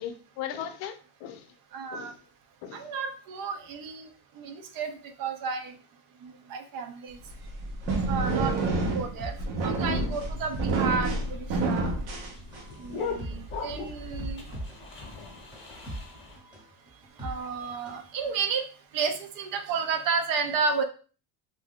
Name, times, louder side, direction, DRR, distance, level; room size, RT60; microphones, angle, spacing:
voice 1, 0.0-1.5 1.9-2.2 2.6-2.9 9.9-10.2, left 9 dB, 60° left, 8 dB, 0.6 m, -38 dB
voice 2, 1.7-2.1 2.7-4.1 4.4-5.7 6.2-7.2 8.1-8.6 8.9-9.4 9.6-12.0 12.8-14.5 17.2-18.7 18.9-20.8, right 5 dB, 45° right, 7 dB, 0.4 m, -32 dB
sound 1, 7.2-12.9, right 3 dB, 90° right, 1.0 m, -28 dB
sound 2, 7.9-18.1 18.4-18.5, right 1 dB, 10° right, 0.7 m, -41 dB
sound 3, 10.7-16.4, left 4 dB, 25° left, 0.8 m, -39 dB
2.6 x 2.2 x 3.5 m, 0.38 s
cardioid pair, 135°, 49 cm